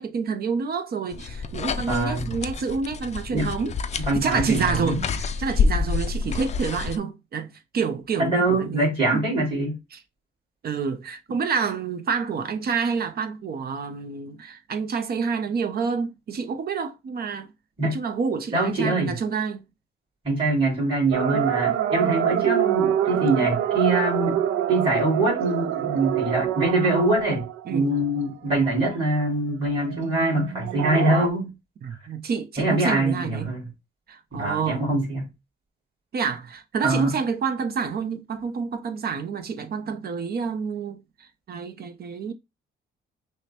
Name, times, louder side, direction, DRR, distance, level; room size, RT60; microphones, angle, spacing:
voice 1, 0.0-9.3 9.9-10.0 10.6-17.5 17.8-19.6 27.7-27.9 31.8-33.5 34.1-34.9 36.1-42.3, right 5 dB, 50° right, 0.7 m, -28 dB
sound 1, 1.1-7.0, left 4 dB, 35° left, 0.4 m, -28 dB
voice 2, 1.9-2.3 3.3-3.5 4.0-5.0 8.2-9.8 17.8-18.0 18.5-19.2 20.2-24.4 24.7-31.5 32.6-33.7 34.3-35.3 36.8-37.1, right 2 dB, 25° right, 2.5 m, -24 dB
sound 2, 21.1-28.0 28.6-28.7 28.9-29.0 29.8-31.3, right 11 dB, 85° right, 0.4 m, -26 dB
5.6 x 2.2 x 2.8 m
cardioid pair, 90°, 20 cm